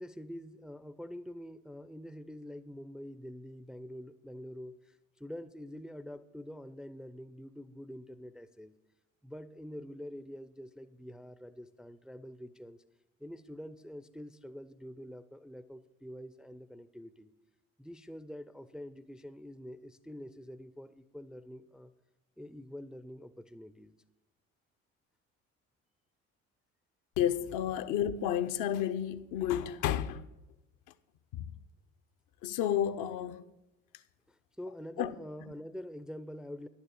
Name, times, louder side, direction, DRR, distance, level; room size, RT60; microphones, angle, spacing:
voice 1, 0.0-8.7 9.2-12.8 13.2-17.3 17.8-21.9 22.4-23.9 34.3-36.7, equal, ahead, 0.5 m, -46 dB
voice 2, 27.2-30.3 31.3-31.5 32.4-33.4 35.0-35.2, left 10 dB, 55° left, 0.7 m, -31 dB
11.0 x 7.2 x 7.8 m
figure-of-eight pair, 55°, 39 cm